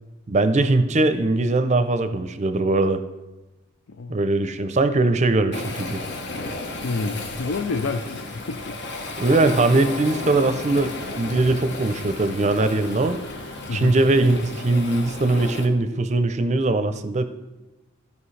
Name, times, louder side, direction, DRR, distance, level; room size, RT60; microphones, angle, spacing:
voice 1, 0.3-3.0 4.1-6.0 9.2-13.2 13.7-17.2, right 2 dB, 35° right, 10 dB, 0.5 m, -21 dB
Waves surf, 5.5-15.7, left 2 dB, 60° left, 1.0 m, -34 dB
voice 2, 6.8-8.8 13.7-14.0, left 3 dB, 85° left, 7 dB, 0.5 m, -28 dB
15.0 x 5.3 x 3.3 m, 1.1 s
head